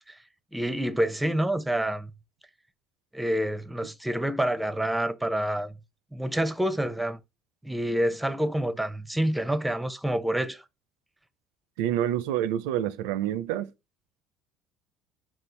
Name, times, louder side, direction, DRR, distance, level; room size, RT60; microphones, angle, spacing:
voice 1, 0.5-2.1 3.1-5.7 6.1-7.2 7.6-10.6, right 1 dB, 5° right, 0.6 m, -27 dB
voice 2, 11.8-13.7, right 11 dB, 85° right, 0.4 m, -27 dB
3.7 x 2.4 x 4.4 m
supercardioid pair, 85°, 0 cm